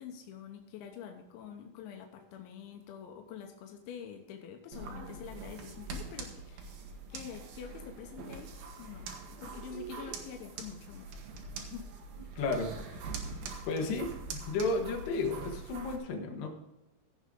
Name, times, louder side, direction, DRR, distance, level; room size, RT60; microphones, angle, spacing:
voice 1, 0.0-8.5 8.8-9.1 9.4-11.1 11.6-11.9 14.7-14.8, left 8 dB, 85° left, 3 dB, 3.3 m, -46 dB
sound 1, 4.7-16.0, right 4 dB, 65° right, 2.7 m, -43 dB
voice 2, 12.4-12.7 13.7-16.5, left 3 dB, 70° left, 2 dB, 3.5 m, -33 dB
16.5 x 6.5 x 3.7 m, 0.98 s
omnidirectional pair, 5.2 m